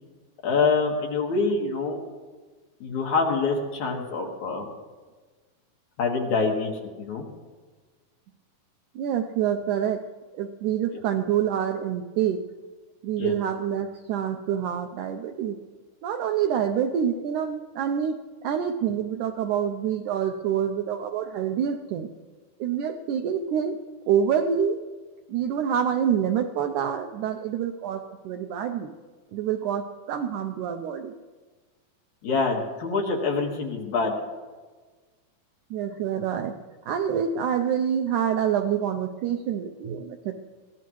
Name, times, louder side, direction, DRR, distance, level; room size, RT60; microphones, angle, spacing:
voice 1, 0.4-2.0 2.8-4.7 6.0-7.3 10.9-11.0 13.2-13.3 32.2-34.1, left 4 dB, 60° left, 0 dB, 2.8 m, -25 dB
voice 2, 9.0-10.0 10.4-12.4 13.0-15.6 16.0-22.1 22.6-23.8 24.1-24.8 25.3-28.9 29.3-31.1 35.7-36.6 36.9-40.4, right 8 dB, 85° right, 5 dB, 1.8 m, -27 dB
22.0 x 16.5 x 3.1 m, 1.4 s
omnidirectional pair, 4.3 m